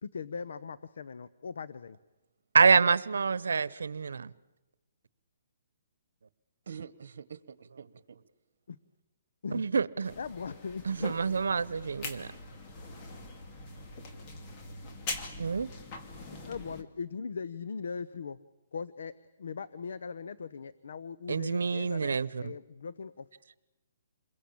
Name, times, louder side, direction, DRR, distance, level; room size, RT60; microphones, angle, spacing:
voice 1, 0.0-2.0 8.7-8.8 9.4-9.6 10.2-11.2 16.4-18.4 18.7-23.3, left 5 dB, 75° left, 0.9 m, -40 dB
voice 2, 2.5-4.3 9.5-10.1 10.8-12.3 15.4-15.7 21.3-22.5, right 5 dB, 90° right, 1.0 m, -27 dB
voice 3, 6.7-8.2 23.4-23.6, right 7 dB, 70° right, 1.4 m, -46 dB
sound 1, 10.0-16.8, left 3 dB, 25° left, 2.6 m, -43 dB
28.0 x 22.0 x 8.7 m
hypercardioid pair, 160°, 0 cm